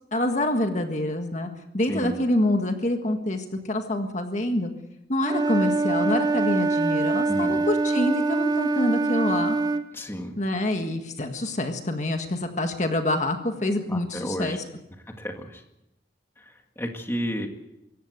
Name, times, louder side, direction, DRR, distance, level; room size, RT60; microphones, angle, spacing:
voice 1, 0.1-1.5 1.7-4.7 5.1-9.6 10.4-14.6, left 1 dB, 40° left, 5 dB, 1.7 m, -26 dB
Wind instrument woodwind instrument, 5.2-9.9, right 3 dB, 20° right, 1.1 m, -24 dB
voice 2, 7.3-7.7 9.9-10.3 13.9-14.6 15.1-15.6 16.4-17.5, equal, 15° left, 3 dB, 2.0 m, -32 dB
25.5 x 14.5 x 8.0 m, 0.89 s
head